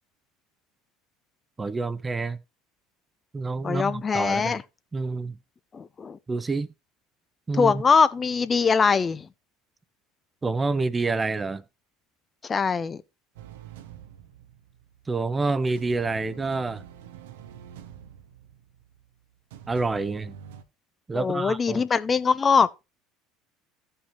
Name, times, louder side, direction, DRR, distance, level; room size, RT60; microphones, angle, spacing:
voice 1, 1.6-2.4 3.3-4.5 4.9-5.4 6.3-6.7 7.5-7.8 10.4-11.6 15.1-16.8 19.7-20.4 21.1-21.8, right 3 dB, 20° right, 0.6 m, -27 dB
voice 2, 3.6-4.6 5.7-6.2 7.5-9.3 12.4-13.0 21.1-22.8, left 5 dB, 30° left, 0.5 m, -22 dB
sound 1, 13.4-15.4 15.8-20.6, right 9 dB, 70° right, 0.7 m, -46 dB
15.5 x 5.5 x 2.9 m
figure-of-eight pair, 65°, 0 cm